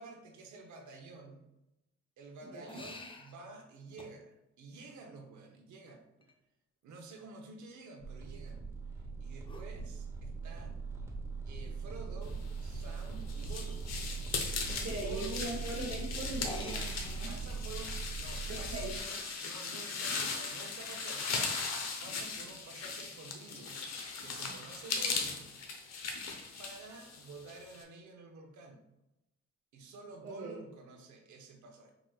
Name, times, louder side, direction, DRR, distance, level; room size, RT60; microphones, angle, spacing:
voice 1, 0.0-1.4 2.2-6.3 6.8-8.6 8.9-10.8 11.5-14.0 14.9-15.4 17.3-21.4 22.0-23.8 24.2-25.5 26.6-28.8 29.7-31.9, right 3 dB, 70° right, 3 dB, 0.9 m, -50 dB
sound 1, 2.7-3.3 4.0-4.1 6.2-6.3 9.5-9.7 11.1-11.2 11.7-11.8 12.1-12.2 15.2-15.3 16.3-18.7, left 2 dB, 15° left, 0.5 m, -48 dB
sound 2, 8.0-19.0, right 4 dB, 10° right, 1.0 m, -40 dB
sound 3, 12.7-27.8, left 4 dB, 60° left, 0.7 m, -38 dB
voice 2, 14.7-17.3 18.6-18.9 30.2-30.6, right 2 dB, 45° right, -5 dB, 0.9 m, -40 dB
4.9 x 3.0 x 2.4 m, 0.91 s
cardioid pair, 90°, 30 cm